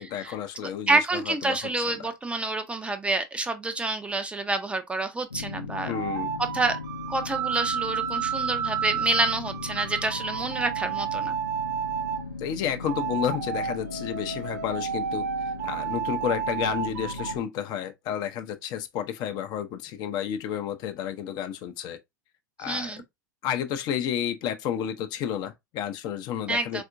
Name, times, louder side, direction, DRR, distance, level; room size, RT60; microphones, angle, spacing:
voice 1, 0.1-1.6 2.0-2.1 5.9-6.3 12.4-15.2 15.6-22.0 22.6-22.9 23.4-26.8, left 9 dB, 40° left, 0.6 m, -31 dB
voice 2, 0.9-6.0 6.4-6.8 7.1-11.4 22.6-23.0 26.5-26.8, right 2 dB, 10° right, 0.5 m, -28 dB
sound 1, 5.3-17.4, left 3 dB, 85° left, 0.6 m, -38 dB
sound 2, 5.8-12.2 12.8-17.3, right 8 dB, 60° right, 0.7 m, -31 dB
4.2 x 2.5 x 2.5 m
figure-of-eight pair, 80°, 10 cm